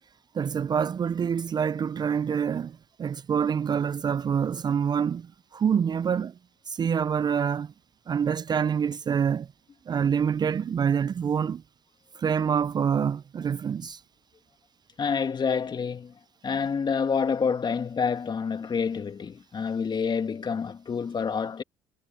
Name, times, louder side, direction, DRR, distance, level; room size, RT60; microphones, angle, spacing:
voice 1, 0.3-6.3 6.7-7.7 8.1-9.5 9.9-11.6 12.2-14.0, right 7 dB, 35° right, 0.4 m, -26 dB
voice 2, 15.0-16.1 16.4-21.6, left 6 dB, 35° left, 2.4 m, -28 dB
supercardioid pair, 75°, 13 cm